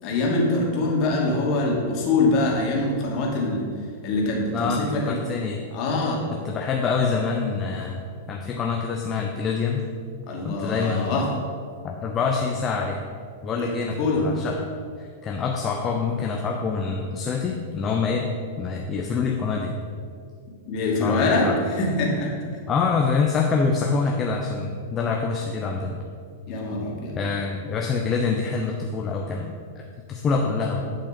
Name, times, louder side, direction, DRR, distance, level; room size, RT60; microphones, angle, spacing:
voice 1, 0.0-3.6 4.0-5.2 5.7-6.2 10.3-11.3 13.6-13.7 14.0-14.2 20.7-22.3 26.5-27.2, left 2 dB, 45° left, -2 dB, 2.6 m, -24 dB
voice 2, 4.5-5.6 6.3-9.9 10.4-11.1 11.8-13.0 13.4-14.7 15.0-18.3 18.6-19.7 21.0-21.6 22.7-26.0 27.2-29.8 30.1-30.9, left 5 dB, 25° left, 1 dB, 0.8 m, -26 dB
10.5 x 5.7 x 5.3 m, 2.2 s
hypercardioid pair, 100°, 0 cm